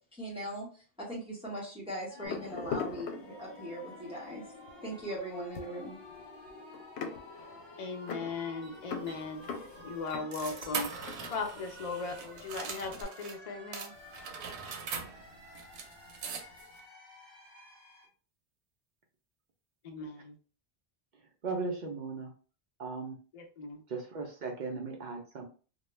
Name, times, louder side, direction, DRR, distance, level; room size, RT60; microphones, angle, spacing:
voice 1, 0.1-0.7 1.0-4.4 4.8-6.0, right 1 dB, 5° right, -4 dB, 0.8 m, -39 dB
sound 1, 2.1-18.1, left 2 dB, 70° left, 1.2 m, -51 dB
sound 2, 2.2-3.9 4.5-4.7 5.0-12.1 12.4-13.0, left 5 dB, 85° left, 0.8 m, -41 dB
voice 2, 7.8-13.9 19.8-20.4 23.3-23.8, left 4 dB, 50° left, 3 dB, 0.5 m, -38 dB
sound 3, 8.6-13.4 13.7-16.8, right 6 dB, 90° right, 0.8 m, -42 dB
voice 3, 21.4-22.3 22.8-23.2 23.9-25.5, right 4 dB, 55° right, 1 dB, 0.6 m, -37 dB
2.3 x 2.2 x 3.0 m, 0.37 s
omnidirectional pair, 1.1 m